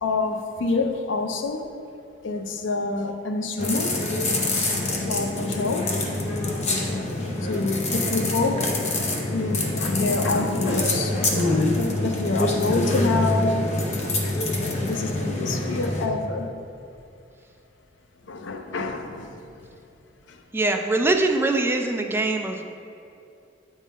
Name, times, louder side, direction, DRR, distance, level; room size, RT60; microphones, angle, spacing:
voice 1, 0.0-1.7 2.2-4.0 5.1-6.0 7.4-8.7 9.3-11.7 12.0-13.6 14.8-16.5 18.3-19.4 20.3-20.4, left 3 dB, 70° left, 5 dB, 0.5 m, -27 dB
sound 1, 3.6-16.1, left 2 dB, 35° left, 0.7 m, -25 dB
voice 2, 7.2-7.7 20.5-22.6, right 2 dB, 10° right, 4 dB, 0.3 m, -23 dB
8.2 x 3.7 x 4.2 m, 2.6 s
head